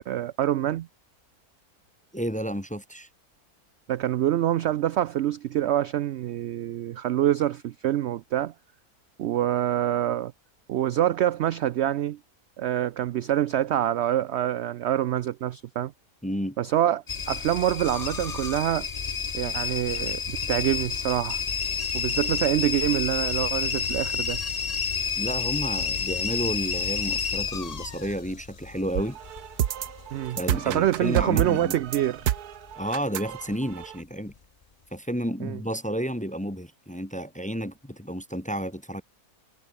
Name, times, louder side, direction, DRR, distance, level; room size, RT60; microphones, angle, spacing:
voice 1, 0.1-0.9 3.9-8.5 9.2-10.3 10.7-12.2 12.6-15.9 16.6-18.9 19.3-21.4 21.9-24.4 30.1-32.3 35.4-35.6, right 12 dB, 70° right, 0.6 m, -26 dB
voice 2, 2.1-3.1 16.2-16.6 25.2-29.2 30.4-31.8 32.8-34.3 34.9-39.0, equal, 5° left, 1.0 m, -31 dB
sound 1, 17.1-32.8 33.4-33.8 34.3-34.4, left 5 dB, 35° left, 0.7 m, -30 dB
sound 2, 28.9-34.0, right 11 dB, 85° right, 1.4 m, -30 dB
omnidirectional pair, 1.6 m